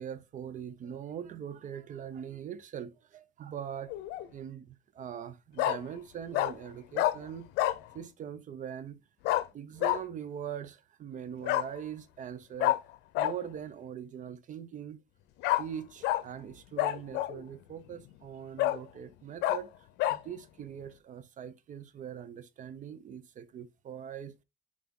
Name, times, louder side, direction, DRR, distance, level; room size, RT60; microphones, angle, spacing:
voice 1, 0.0-3.9 4.3-7.5 7.9-9.0 9.5-12.8 13.2-15.0 15.6-19.7 20.1-24.3, right 9 dB, 50° right, 0.6 m, -42 dB
Bark, 3.9-4.3 5.6-5.8 6.3-6.5 6.9-7.1 7.6-7.8 9.2-9.4 9.8-10.0 11.4-11.7 12.6-12.8 13.1-13.3 15.4-15.6 16.0-16.2 16.8-17.4 17.9-18.0 18.6-18.8 19.4-19.6 20.0-20.2, left 15 dB, 90° left, 0.6 m, -27 dB
5.7 x 4.8 x 3.6 m
cardioid pair, 110°, 17 cm